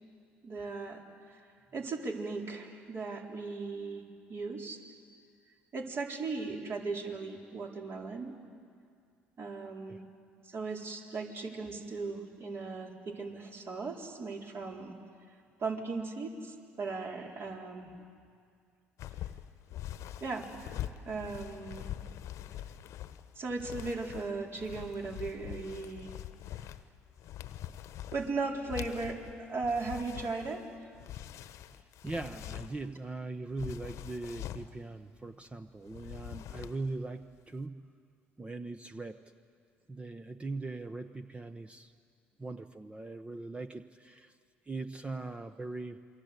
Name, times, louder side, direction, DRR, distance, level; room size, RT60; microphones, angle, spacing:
voice 1, 0.4-1.0 1.7-4.0 4.3-4.8 5.7-8.3 9.4-10.0 10.5-14.9 15.6-17.9 20.2-20.5 21.1-21.9 23.4-26.1 28.1-30.9, right 3 dB, 45° right, 0 dB, 4.3 m, -37 dB
sound 1, 19.0-33.0 33.5-34.7 35.8-37.0 37.2-37.5, left 12 dB, 60° left, 1.1 m, -44 dB
voice 2, 31.8-37.8 38.4-39.2 39.9-41.9 42.4-44.3 44.7-46.0, right 3 dB, 20° right, 9 dB, 1.0 m, -40 dB
28.0 x 23.5 x 8.2 m, 2.2 s
hypercardioid pair, 60°, 6 cm